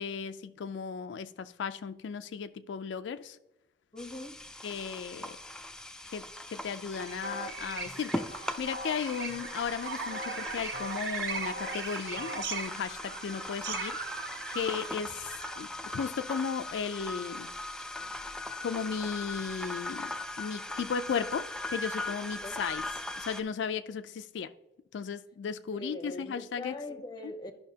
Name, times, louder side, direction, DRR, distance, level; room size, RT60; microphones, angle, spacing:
voice 1, 0.0-3.4 4.6-5.4 6.1-14.0 14.5-17.5 18.6-22.8 23.2-24.5 24.9-26.7, left 6 dB, 90° left, 0.3 m, -35 dB
voice 2, 3.9-4.4 22.4-22.6 25.7-27.5, left 1 dB, 25° left, 0.7 m, -41 dB
sound 1, 4.0-23.4, left 1 dB, 5° left, 0.4 m, -40 dB
sound 2, 7.0-15.7, right 4 dB, 65° right, 0.8 m, -38 dB
12.0 x 5.6 x 2.8 m
head